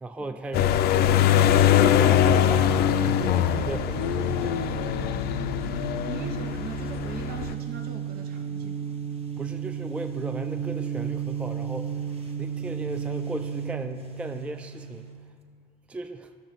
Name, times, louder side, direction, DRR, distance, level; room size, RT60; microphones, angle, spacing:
voice 1, 0.0-1.3 1.7-5.0 9.4-12.0 12.4-15.1 15.9-16.3, right 2 dB, 5° right, 7 dB, 0.3 m, -36 dB
sound 1, 0.5-7.5, left 11 dB, 70° left, 0.4 m, -22 dB
sound 2, 0.8-15.3, right 8 dB, 35° right, 1.0 m, -34 dB
voice 2, 6.0-9.0, right 5 dB, 65° right, 4 dB, 0.7 m, -41 dB
13.5 x 6.8 x 2.9 m, 2.2 s
cardioid pair, 110°, 17 cm